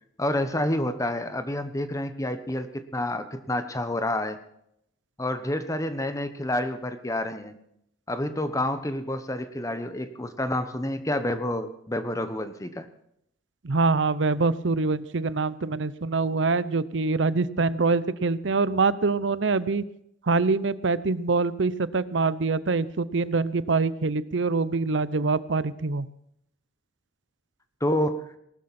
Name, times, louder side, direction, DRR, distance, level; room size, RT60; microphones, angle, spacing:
voice 1, 0.2-4.4 5.2-7.6 8.1-12.9 27.8-28.2, left 1 dB, 15° left, 10 dB, 1.2 m, -28 dB
voice 2, 13.6-19.8 20.2-26.1, right 3 dB, 75° right, 17 dB, 0.7 m, -24 dB
19.5 x 13.0 x 4.3 m, 0.74 s
head